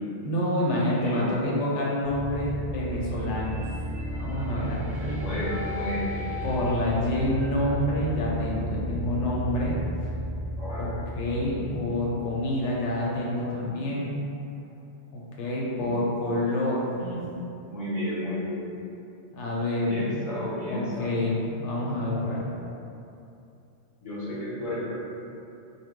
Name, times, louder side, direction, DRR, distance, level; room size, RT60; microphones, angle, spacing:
voice 1, 0.2-3.6 4.2-5.2 6.4-9.7 10.7-14.1 15.1-17.2 19.3-20.1 20.7-22.4, left 1 dB, 80° left, -5 dB, 0.9 m, -28 dB
sound 1, 2.0-12.9, equal, 65° right, 0.7 m, -33 dB
voice 2, 5.0-6.3 10.6-10.9 11.3-11.5 15.8-16.0 17.7-18.8 19.8-21.1 24.0-24.9, left 1 dB, 35° left, -10 dB, 0.7 m, -32 dB
2.2 x 2.0 x 3.5 m, 2.7 s
omnidirectional pair, 1.2 m